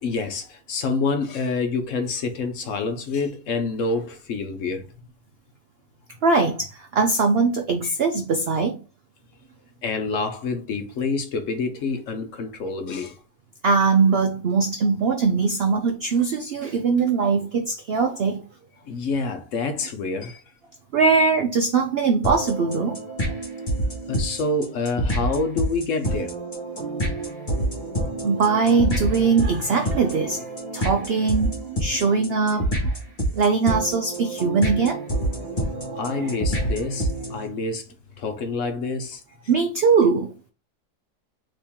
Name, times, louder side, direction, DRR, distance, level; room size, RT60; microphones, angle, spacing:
voice 1, 0.0-4.8 7.8-7.9 9.8-13.2 18.8-20.4 24.1-26.4 36.0-39.2, left 3 dB, 60° left, 0.9 m, -27 dB
voice 2, 6.2-8.8 13.6-18.4 20.9-23.0 28.2-33.0 33.3-35.0 36.2-36.4 39.5-40.3, right 4 dB, 75° right, 0.5 m, -21 dB
sound 1, 22.2-37.5, right 1 dB, 30° left, 1.5 m, -28 dB
4.3 x 3.1 x 3.5 m
omnidirectional pair, 1.7 m